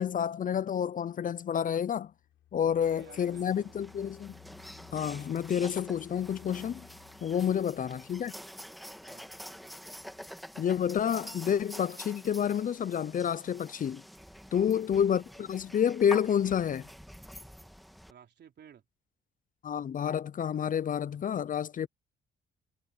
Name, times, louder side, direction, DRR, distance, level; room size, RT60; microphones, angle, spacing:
voice 1, 0.0-2.1 2.5-4.4 4.9-6.9 7.2-8.3 10.6-14.0 14.5-16.9 19.6-21.9, left 8 dB, 45° left, 0.5 m, -29 dB
sound 1, 2.0-10.3, left 12 dB, 80° left, 6.3 m, -58 dB
voice 2, 2.6-4.0 9.1-9.4 14.5-14.7 18.1-18.8 21.8-21.9, right 8 dB, 60° right, 3.8 m, -55 dB
sound 2, 2.8-18.1, equal, ahead, 1.7 m, -47 dB
cardioid pair, 90°, 20 cm